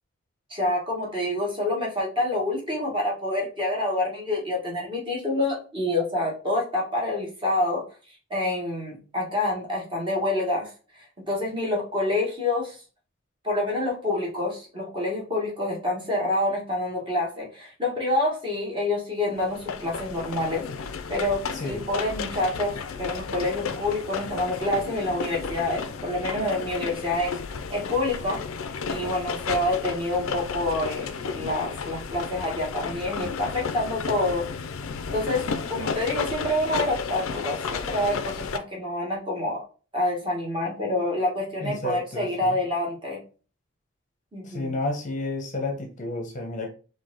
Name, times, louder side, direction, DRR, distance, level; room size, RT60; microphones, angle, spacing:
voice 1, 0.5-7.8 8.3-10.7 11.3-12.8 13.4-20.6 21.1-27.4 27.7-28.4 28.9-34.5 35.1-39.6 39.9-43.2 44.3-44.8, left 1 dB, 25° right, -2 dB, 1.6 m, -27 dB
sound 1, 19.4-38.6, left 5 dB, 80° left, 0.5 m, -33 dB
voice 2, 41.6-42.5 44.5-46.7, left 2 dB, 35° left, 3 dB, 0.7 m, -31 dB
4.5 x 2.7 x 3.8 m, 0.36 s
head